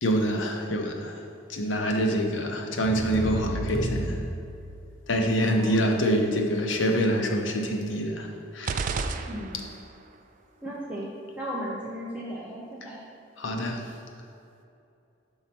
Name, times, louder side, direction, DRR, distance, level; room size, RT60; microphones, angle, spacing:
voice 1, 0.0-1.2 1.5-4.3 5.1-9.3 9.5-9.6 12.8-12.9 13.4-13.9, equal, 70° left, 2 dB, 0.8 m, -26 dB
sound 1, 2.8-5.1, right 1 dB, 70° right, 0.9 m, -32 dB
voice 2, 5.5-5.9 9.3-9.6 10.6-11.1 11.4-13.0, equal, 5° right, -6 dB, 0.7 m, -36 dB
sound 2, 8.6-10.0, right 4 dB, 45° right, 0.3 m, -31 dB
5.6 x 4.4 x 6.0 m, 2.6 s
head